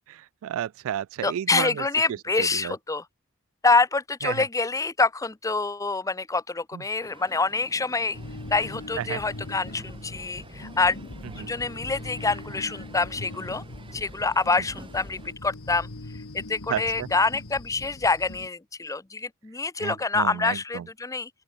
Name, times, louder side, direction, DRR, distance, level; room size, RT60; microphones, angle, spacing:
voice 1, 0.1-1.8 2.4-2.7 4.2-4.4 6.7-6.8 9.0-9.2 11.4-11.5 16.7-17.1 19.8-20.8, right 10 dB, 65° right, 0.3 m, -32 dB
voice 2, 1.2-3.1 3.6-8.2 8.5-11.0 11.4-13.6 13.9-15.9 16.3-21.3, left 3 dB, 15° left, 0.6 m, -26 dB
Crowd, 7.0-15.3, right 2 dB, 25° right, 1.9 m, -49 dB
sound 1, 8.1-18.5, left 2 dB, 70° left, 1.7 m, -41 dB
open air
head